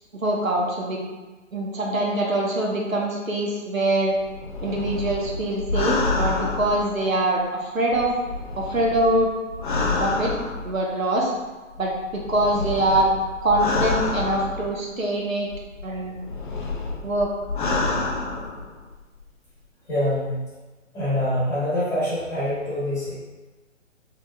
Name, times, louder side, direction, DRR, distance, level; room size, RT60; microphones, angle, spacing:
voice 1, 0.1-1.0 1.5-4.2 4.6-8.1 8.6-9.3 10.0-10.3 10.6-11.3 11.8-13.1 13.4-15.5 15.8-16.2 17.0-17.3, right 1 dB, 90° right, -2 dB, 1.0 m, -23 dB
sound 1, 4.2-7.4 7.9-10.9 11.8-15.0 15.5-18.9 19.2-19.3, left 3 dB, 40° left, 0.5 m, -28 dB
voice 2, 19.8-20.4 20.9-23.1, left 1 dB, 5° left, -11 dB, 1.0 m, -25 dB
3.9 x 3.6 x 2.2 m, 1.2 s
figure-of-eight pair, 135°, 39 cm